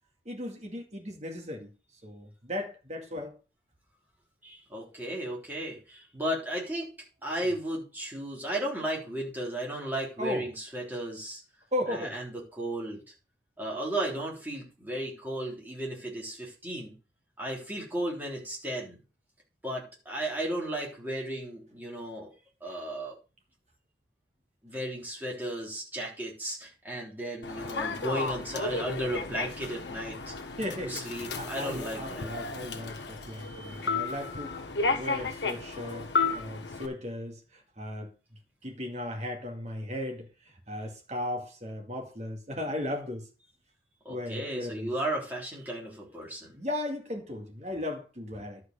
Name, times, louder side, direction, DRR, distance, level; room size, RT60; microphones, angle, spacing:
voice 1, 0.3-1.7 2.0-3.3 10.2-10.5 11.7-12.2 30.6-31.0 31.4-34.5 34.9-38.1 38.6-40.3 40.7-43.3 44.1-44.9 46.5-48.6, left 1 dB, 35° right, 2.2 m, -36 dB
voice 2, 4.4-6.9 7.2-11.4 11.9-13.0 13.6-16.9 17.4-19.0 19.6-22.3 22.6-23.2 24.6-30.3 30.8-32.3 44.1-46.5, right 1 dB, 10° right, 3.4 m, -34 dB
Human voice / Subway metro underground, 27.4-36.9, left 4 dB, 75° left, 1.4 m, -33 dB
11.5 x 4.8 x 6.6 m
head